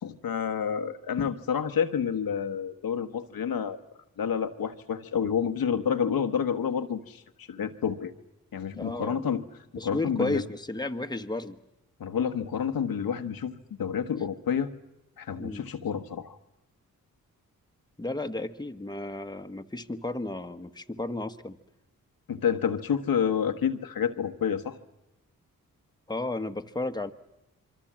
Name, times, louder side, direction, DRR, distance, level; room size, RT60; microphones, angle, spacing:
voice 1, 0.0-3.8 4.2-8.1 8.5-9.4 9.8-10.4 12.0-13.5 13.8-14.7 15.2-16.4 22.3-24.8, left 7 dB, 75° left, 7 dB, 1.3 m, -29 dB
voice 2, 8.7-9.2 9.8-11.6 15.4-15.7 18.0-21.6 26.1-27.1, left 2 dB, 10° left, 7 dB, 1.4 m, -33 dB
26.5 x 23.5 x 7.5 m, 0.95 s
supercardioid pair, 45°, 36 cm